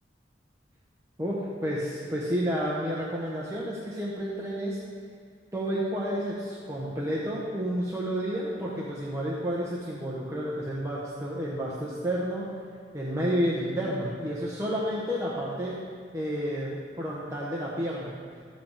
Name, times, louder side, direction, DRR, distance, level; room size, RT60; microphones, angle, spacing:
voice 1, 1.2-4.8 5.5-12.5 12.9-15.8 16.1-18.2, equal, 15° right, -6 dB, 1.0 m, -30 dB
13.0 x 7.7 x 3.5 m, 2.2 s
head